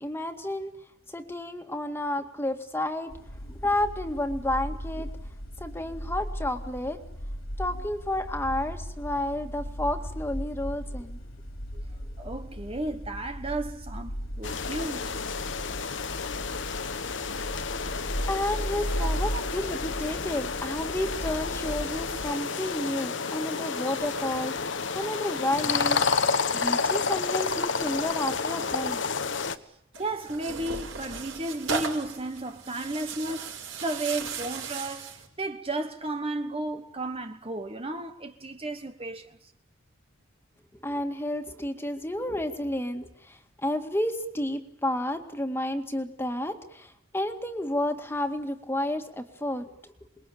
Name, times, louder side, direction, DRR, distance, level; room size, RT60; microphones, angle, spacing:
voice 1, 0.0-0.7 1.1-3.1 3.5-5.1 5.6-7.0 7.6-11.2 18.1-26.0 26.5-29.0 40.8-49.7, left 1 dB, 10° left, 2.0 m, -31 dB
sound 1, 3.1-22.3, equal, 85° left, 3.9 m, -37 dB
voice 2, 12.2-15.2 17.8-18.0 19.0-19.4 23.5-23.6 30.0-33.5 33.8-39.4, right 2 dB, 30° right, 1.2 m, -34 dB
sound 2, 14.4-29.6, left 5 dB, 65° left, 1.2 m, -30 dB
Tearing, 29.9-35.3, right 5 dB, 70° right, 5.4 m, -36 dB
28.0 x 21.5 x 8.7 m
head